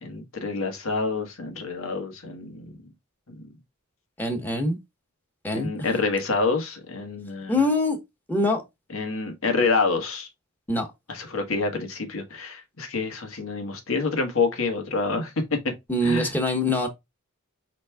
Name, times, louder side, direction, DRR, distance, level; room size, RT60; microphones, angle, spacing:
voice 1, 0.0-2.9 3.3-3.4 5.5-7.6 8.9-10.3 11.1-15.6 16.0-16.3, left 4 dB, 85° left, 1.5 m, -27 dB
voice 2, 4.2-4.8 5.4-5.7 7.5-8.0 8.3-8.6 10.7-10.9 15.9-16.9, left 1 dB, 10° left, 1.2 m, -23 dB
5.3 x 4.1 x 2.3 m
head